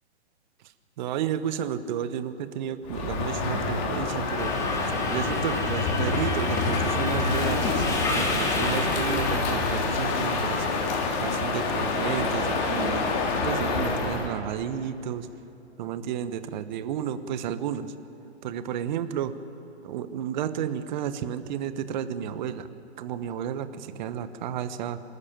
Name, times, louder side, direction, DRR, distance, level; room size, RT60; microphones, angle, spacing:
voice 1, 1.0-7.8 8.1-10.7 11.2-13.1 13.4-15.3 15.8-17.9 18.4-19.3 19.8-22.7 23.0-25.0, right 9 dB, 40° right, 12 dB, 1.1 m, -32 dB
Crow, 2.8-14.3, left 3 dB, 35° left, 3.4 m, -27 dB
Subway metro underground, 4.4-9.4, left 2 dB, 10° left, 2.5 m, -31 dB
24.0 x 13.5 x 9.0 m, 2.9 s
hypercardioid pair, 125°, 34 cm